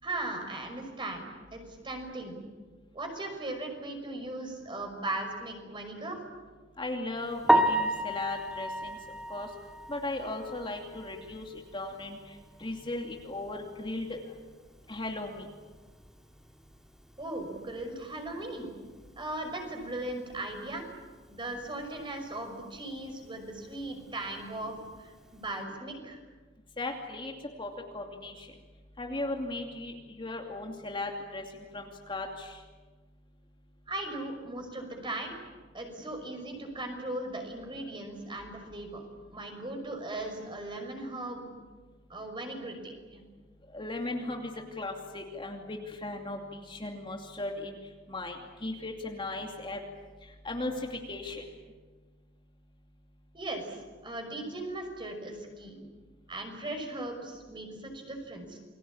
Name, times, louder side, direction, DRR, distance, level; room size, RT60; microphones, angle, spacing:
voice 1, 0.0-1.2 1.5-2.4 2.9-6.2 17.2-18.7 19.2-20.8 21.3-26.2 33.9-35.3 35.7-39.0 39.3-41.4 42.1-43.2 53.3-53.7 54.0-55.8 56.3-58.6, right 2 dB, 25° right, 4 dB, 5.8 m, -38 dB
voice 2, 6.8-9.0 9.3-9.5 9.9-12.2 12.6-14.2 14.9-15.4 26.8-27.3 27.6-28.5 29.0-31.4 31.7-32.6 43.7-46.4 46.7-47.8 48.1-48.4 48.6-49.8 50.4-51.4, left 2 dB, 25° left, 2 dB, 2.6 m, -37 dB
Piano, 7.5-11.4 11.8-11.9 12.4-12.5 12.9-13.0 16.1-16.2 24.6-24.9, right 1 dB, 5° right, 1.9 m, -29 dB
29.0 x 21.5 x 8.7 m, 1.4 s
head